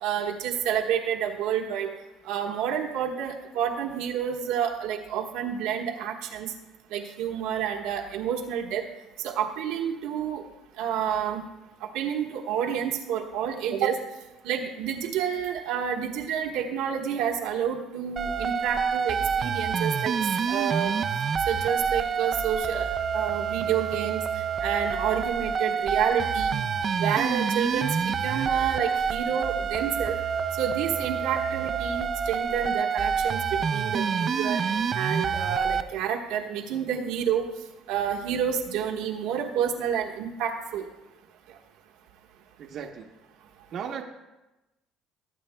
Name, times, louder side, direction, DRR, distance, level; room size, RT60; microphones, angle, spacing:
voice 1, 0.0-1.9 2.3-6.5 6.9-8.8 9.2-10.4 10.8-11.4 11.8-14.0 14.4-20.1 20.5-20.9 21.5-24.2 24.6-26.6 27.0-30.1 30.6-34.6 34.9-37.4 37.9-40.9, right 8 dB, 85° right, 1 dB, 1.2 m, -29 dB
sound 1, 18.2-35.8, right 6 dB, 40° right, 0.5 m, -27 dB
voice 2, 42.6-43.1 43.7-44.0, right 7 dB, 55° right, 2 dB, 0.9 m, -35 dB
18.5 x 8.5 x 2.2 m, 1.0 s
cardioid pair, 105°, 0 cm